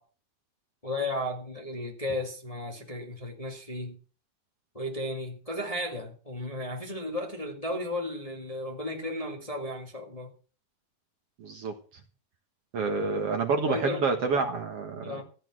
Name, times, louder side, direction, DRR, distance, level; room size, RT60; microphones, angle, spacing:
voice 1, 0.8-4.0 4.7-10.3 13.7-14.6 15.0-15.2, left 1 dB, 15° left, 2.0 m, -34 dB
voice 2, 11.4-11.7 12.7-15.2, right 4 dB, 55° right, 2.2 m, -28 dB
15.0 x 8.8 x 6.2 m
omnidirectional pair, 3.6 m